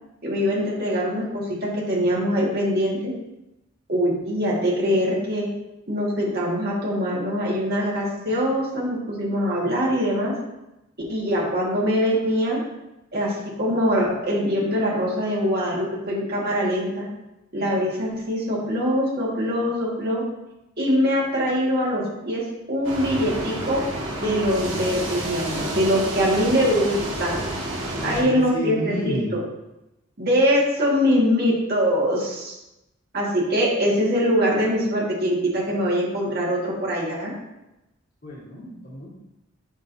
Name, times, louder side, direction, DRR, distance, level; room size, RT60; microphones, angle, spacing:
voice 1, 0.2-3.1 3.9-5.5 5.9-10.4 11.1-12.6 13.1-17.1 17.5-20.2 20.8-23.8 24.2-27.5 28.0-29.4 30.2-32.5 33.1-37.3, equal, 50° right, -4 dB, 1.8 m, -23 dB
sound 1, 22.8-28.2, right 1 dB, 70° right, 1.7 m, -30 dB
voice 2, 27.9-29.4 38.2-39.1, left 1 dB, 45° left, -5 dB, 1.8 m, -31 dB
7.2 x 5.8 x 2.7 m, 0.94 s
head